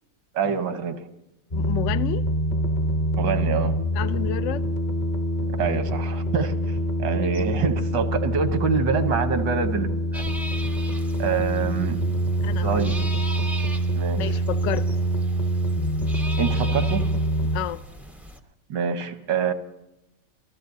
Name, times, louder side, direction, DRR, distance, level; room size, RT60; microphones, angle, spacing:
voice 1, 0.3-1.0 3.1-3.8 5.4-6.5 7.0-10.2 11.2-12.0 12.6-12.9 14.0-14.4 16.4-17.1 18.7-19.5, right 6 dB, 85° right, 1.8 m, -25 dB
voice 2, 1.5-2.2 3.9-4.6 7.2-7.3 12.4-12.7 14.1-14.9 17.4-17.8, left 12 dB, 70° left, 0.7 m, -30 dB
sound 1, 1.5-17.6, right 1 dB, 35° left, 0.9 m, -25 dB
sound 2, 10.1-18.4, equal, ahead, 0.5 m, -39 dB
28.5 x 14.0 x 2.7 m
omnidirectional pair, 1.9 m